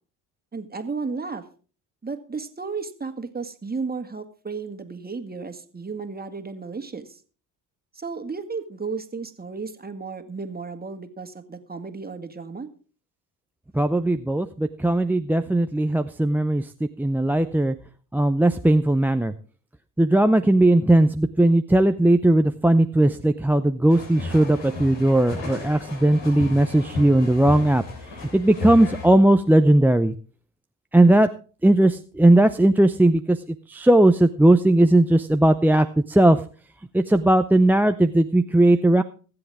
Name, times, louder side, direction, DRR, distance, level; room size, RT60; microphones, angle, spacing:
voice 1, 0.5-1.4 2.0-7.2 7.9-12.7, right 4 dB, 20° right, 8 dB, 1.9 m, -33 dB
voice 2, 13.7-17.8 18.1-19.3 20.0-27.8 28.3-30.1 30.9-31.3 31.6-33.4 33.7-36.4 36.9-39.0, right 1 dB, 5° right, 7 dB, 0.5 m, -18 dB
sound 1, 23.9-29.1, left 2 dB, 70° left, 3.8 m, -34 dB
22.5 x 7.9 x 3.5 m, 0.39 s
hypercardioid pair, 60°, 45 cm